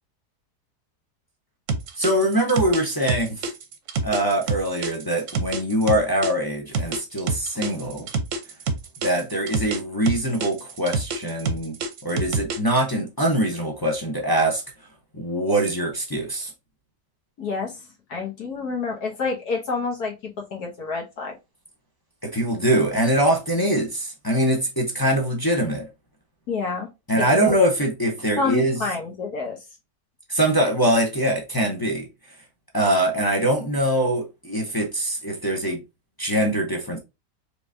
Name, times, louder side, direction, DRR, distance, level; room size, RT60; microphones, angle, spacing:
sound 1, 1.7-6.3 6.7-9.8 10.1-12.8, right 4 dB, 55° right, 1.0 m, -26 dB
voice 1, 2.0-3.4 4.0-8.1 9.0-11.7 12.0-14.6 15.1-16.5 22.2-25.9 27.1-28.8 30.3-32.1 32.7-35.8 36.2-37.0, right 1 dB, 20° left, 0.6 m, -23 dB
voice 2, 17.4-17.8 18.1-20.1 20.5-21.3 26.5-26.9 27.4-27.6 28.4-29.6, left 4 dB, 70° left, 1.6 m, -28 dB
4.7 x 3.5 x 2.7 m
omnidirectional pair, 1.8 m